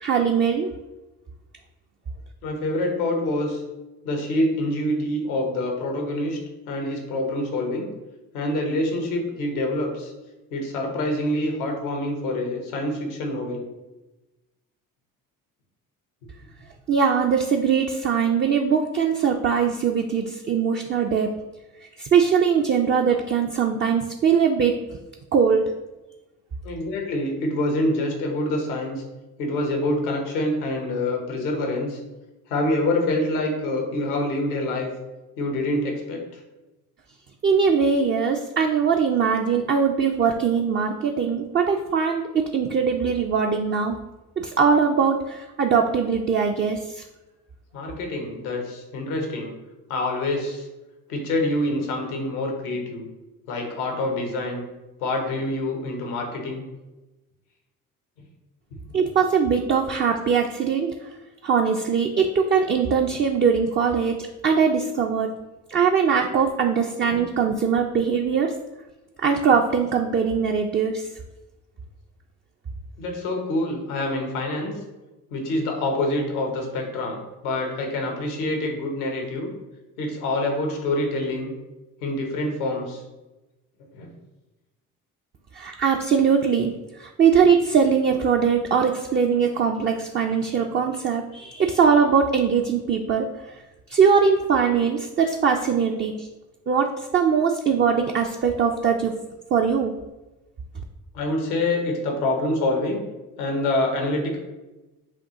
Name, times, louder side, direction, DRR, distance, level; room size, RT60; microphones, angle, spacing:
voice 1, 0.0-0.7 16.9-21.3 22.0-24.7 25.3-25.6 37.4-44.0 44.4-47.0 58.9-60.9 61.4-64.2 64.4-65.3 65.7-68.5 69.2-71.1 85.5-93.6 93.9-96.3 96.7-99.1 99.5-99.9, right 6 dB, 30° right, 3 dB, 0.4 m, -21 dB
voice 2, 2.4-3.6 4.0-6.4 6.7-7.9 8.3-10.1 10.5-13.6 26.6-29.0 29.4-32.0 32.5-34.9 35.4-36.2 47.7-49.5 49.9-50.7 51.1-53.1 53.5-54.6 55.0-56.6 73.0-74.8 75.3-79.5 80.0-81.5 82.0-83.0 83.9-84.1 101.1-103.0 103.4-104.4, left 1 dB, 90° left, 2 dB, 0.9 m, -26 dB
5.8 x 2.3 x 2.8 m, 1.1 s
hypercardioid pair, 45°, 43 cm